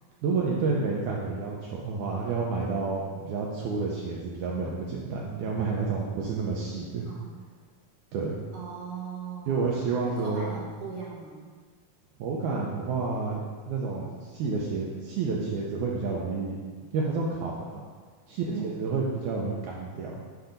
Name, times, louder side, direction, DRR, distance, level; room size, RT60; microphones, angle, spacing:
voice 1, 0.2-7.1 8.1-8.4 9.5-10.5 12.2-16.6 16.9-17.8 18.3-18.5 18.8-20.1, right 4 dB, 85° right, -3 dB, 1.7 m, -30 dB
voice 2, 7.1-7.4 8.5-11.5 18.5-18.8, right 6 dB, 65° right, -5 dB, 2.5 m, -39 dB
8.0 x 2.8 x 5.1 m, 1.5 s
omnidirectional pair, 4.2 m